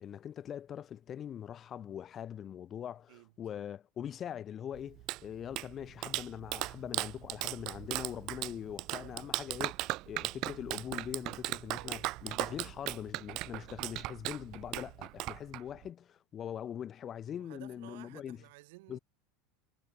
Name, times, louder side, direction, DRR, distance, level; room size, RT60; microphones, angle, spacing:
voice 1, 0.0-9.7 10.1-18.4 18.9-19.0, left 9 dB, 25° left, 1.1 m, -42 dB
Clapping, 4.7-15.9, right 19 dB, 45° right, 0.4 m, -38 dB
voice 2, 9.0-9.4 11.7-12.1 17.4-19.0, right 23 dB, 70° right, 1.2 m, -55 dB
supercardioid pair, 155°, 0 cm